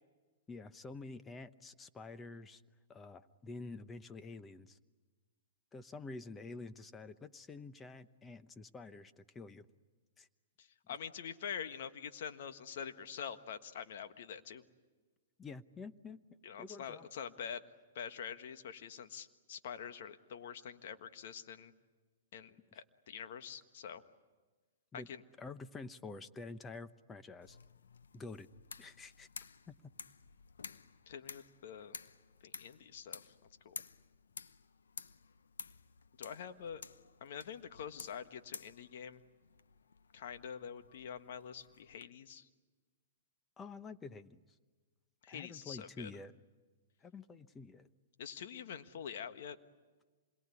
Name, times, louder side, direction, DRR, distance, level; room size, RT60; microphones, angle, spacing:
voice 1, 0.5-2.6 2.9-4.8 5.7-9.7 10.2-10.3 15.4-16.2 16.6-17.1 22.7-22.8 24.9-25.1 25.4-27.6 28.1-28.5 28.8-29.3 29.7-29.9 43.6-44.4 45.3-46.3 47.0-47.9, left 3 dB, 15° left, 12 dB, 0.9 m, -48 dB
voice 2, 10.6-14.6 16.4-17.6 17.9-21.7 22.3-24.0 24.9-25.2 31.1-32.0 32.4-33.3 33.6-33.8 36.2-36.8 37.2-39.2 40.1-42.5 45.2-46.1 48.2-49.6, left 7 dB, 65° left, 9 dB, 1.5 m, -46 dB
sound 1, 27.4-42.1, left 5 dB, 85° left, 0.9 m, -53 dB
27.0 x 22.0 x 9.7 m, 1.3 s
hypercardioid pair, 125°, 0 cm